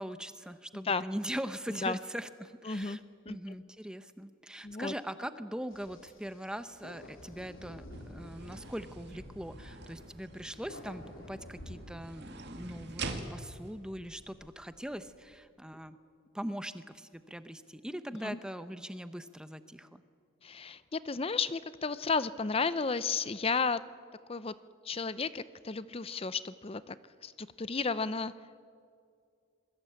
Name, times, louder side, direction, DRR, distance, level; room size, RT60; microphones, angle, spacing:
voice 1, 0.0-3.0 3.3-16.0 16.3-20.0, equal, 5° right, 11 dB, 0.8 m, -41 dB
voice 2, 0.7-1.0 1.8-2.0 2.6-3.0 3.3-3.4 4.6-4.9 18.2-18.4 20.4-23.8 24.3-24.5 24.8-27.0 27.2-28.3, left 4 dB, 25° left, 15 dB, 0.6 m, -33 dB
sound 1, 5.7-12.8, left 1 dB, 70° left, 2.9 m, -50 dB
sound 2, 7.9-15.4, right 3 dB, 50° right, 2.2 m, -45 dB
27.0 x 21.5 x 8.5 m, 2.3 s
head